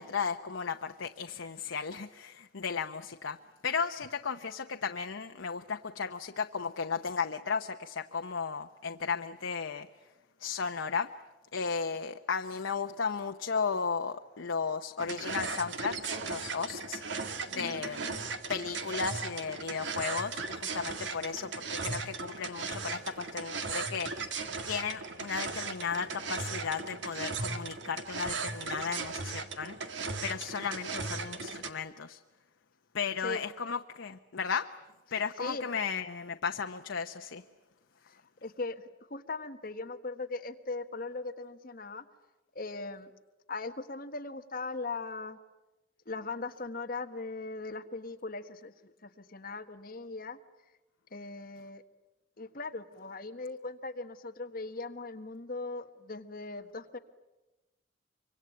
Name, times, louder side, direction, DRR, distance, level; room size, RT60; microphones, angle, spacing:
voice 1, 0.0-9.9 10.4-11.1 11.5-17.0 17.5-18.1 18.5-29.8 30.2-32.2 32.9-34.7 35.1-37.4, left 5 dB, 85° left, 6 dB, 0.9 m, -35 dB
sound 1, 15.0-31.7, right 4 dB, 70° right, 1.9 m, -37 dB
voice 2, 17.5-18.3 33.2-33.4 35.4-35.7 38.0-38.8 39.1-42.0 42.5-43.1 43.5-45.4 46.0-48.7 49.0-50.4 51.1-51.8 52.4-57.0, left 3 dB, 50° left, 7 dB, 1.5 m, -39 dB
25.0 x 24.5 x 9.3 m, 1.1 s
head